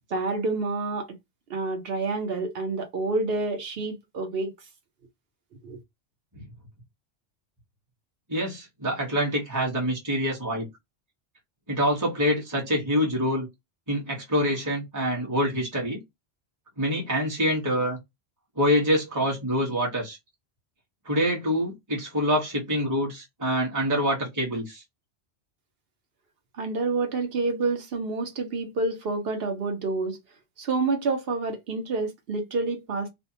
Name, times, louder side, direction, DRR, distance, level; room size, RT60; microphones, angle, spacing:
voice 1, 0.1-1.1 1.5-4.5 5.6-5.8 26.6-30.2 30.6-33.1, right 3 dB, 60° right, 1.0 m, -28 dB
voice 2, 8.3-10.7 11.7-13.5 13.9-16.0 16.8-18.0 18.6-20.2 21.1-24.8, equal, 15° right, 1.1 m, -26 dB
2.6 x 2.2 x 2.7 m
omnidirectional pair, 1.2 m